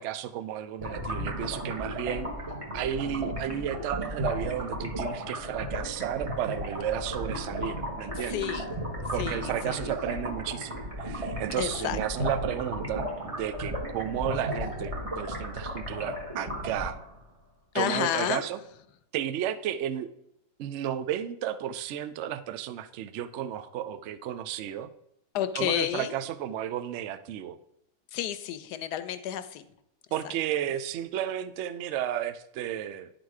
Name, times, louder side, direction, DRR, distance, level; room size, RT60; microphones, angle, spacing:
voice 1, 0.0-2.3 2.7-8.6 9.1-17.0 17.7-18.6 19.1-20.1 20.6-24.9 25.5-27.6 30.1-33.1, right 10 dB, 75° right, 12 dB, 0.6 m, -33 dB
sound 1, 0.8-17.2, equal, 25° right, 1.0 m, -34 dB
voice 2, 8.2-8.7 9.2-9.9 11.6-12.0 17.7-18.4 25.3-26.1 28.1-29.6 30.2-30.3, left 10 dB, 80° left, 12 dB, 1.2 m, -31 dB
10.5 x 4.0 x 4.7 m, 0.80 s
omnidirectional pair, 1.8 m